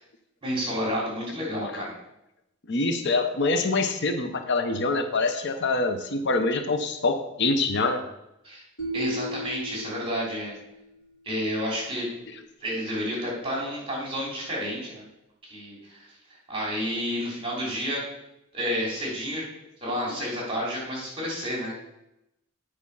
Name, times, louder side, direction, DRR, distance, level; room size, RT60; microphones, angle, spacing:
voice 1, 0.4-1.9 8.4-8.6 8.9-10.6 11.2-12.1 12.6-15.0 15.4-18.1 18.5-19.4 19.8-21.7, equal, 25° right, -4 dB, 3.2 m, -30 dB
voice 2, 2.7-8.0, left 3 dB, 60° left, 7 dB, 0.8 m, -25 dB
sound 1, 8.8-10.9, equal, 80° left, 1.9 m, -35 dB
8.5 x 5.0 x 5.5 m, 0.87 s
head